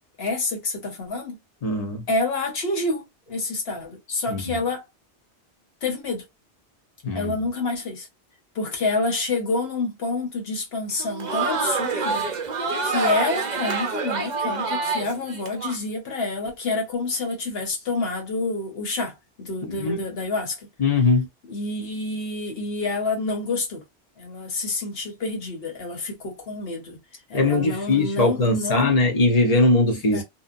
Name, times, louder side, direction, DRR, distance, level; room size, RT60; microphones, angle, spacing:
voice 1, 0.2-1.4 2.1-4.9 5.8-6.2 7.1-8.1 8.5-12.3 12.8-20.6 21.5-23.8 24.2-27.0 27.3-28.9 30.1-30.2, left 3 dB, 60° left, 1.2 m, -28 dB
voice 2, 1.6-2.0 4.3-4.6 7.0-7.4 19.6-20.0 20.8-21.3 27.3-30.2, left 2 dB, 35° left, 0.9 m, -21 dB
Crowd, 10.9-15.8, right 4 dB, 45° right, 0.7 m, -26 dB
2.8 x 2.2 x 2.5 m
omnidirectional pair, 1.2 m